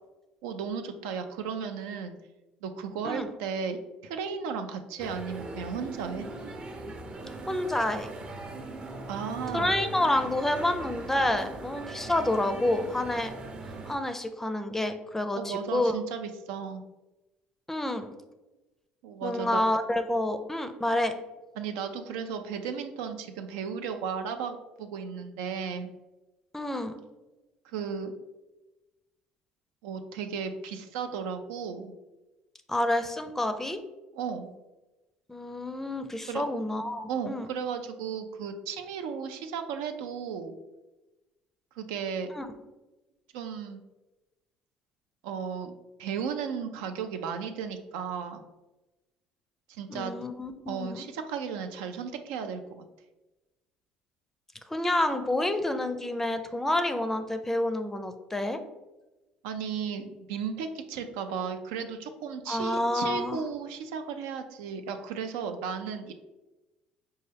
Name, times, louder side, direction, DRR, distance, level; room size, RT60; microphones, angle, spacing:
voice 1, 0.4-2.2 2.6-6.3 9.1-9.7 15.4-16.8 19.0-19.6 21.6-25.9 27.6-28.1 29.8-31.9 34.1-34.5 36.3-36.4 37.1-40.6 41.8-42.3 43.3-43.8 45.2-45.7 46.0-48.4 49.7-50.1 50.7-52.8 59.4-66.1, right 6 dB, 90° right, 7 dB, 0.4 m, -35 dB
sound 1, 5.0-14.0, right 2 dB, 35° right, 0.6 m, -40 dB
voice 2, 7.5-8.1 9.5-13.3 13.8-16.0 17.7-18.1 19.2-21.1 26.5-27.0 32.7-33.8 35.3-37.5 42.3-42.5 49.9-51.0 54.7-58.6 62.5-63.4, left 1 dB, 10° left, 8 dB, 0.4 m, -28 dB
5.2 x 2.2 x 3.3 m, 1.1 s
supercardioid pair, 85°, 3 cm